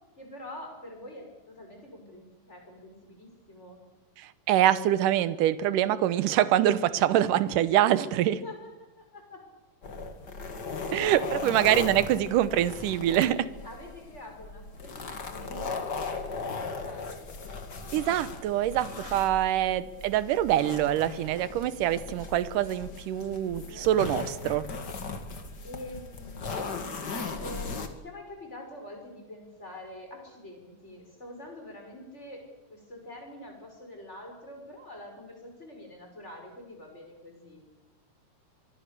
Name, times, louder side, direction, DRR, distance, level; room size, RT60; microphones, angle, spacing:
voice 1, 0.2-3.8 8.0-8.7 9.0-9.4 10.8-11.6 13.6-17.3 23.7-23.9 25.6-26.7 27.0-32.4 32.7-37.6, left 1 dB, 20° left, 2 dB, 6.0 m, -45 dB
voice 2, 4.2-8.4 10.9-13.5 17.9-24.7, right 12 dB, 75° right, 15 dB, 2.6 m, -25 dB
sound 1, 9.8-27.9, left 4 dB, 35° left, 2.2 m, -38 dB
24.5 x 24.0 x 6.8 m, 1.1 s
omnidirectional pair, 3.8 m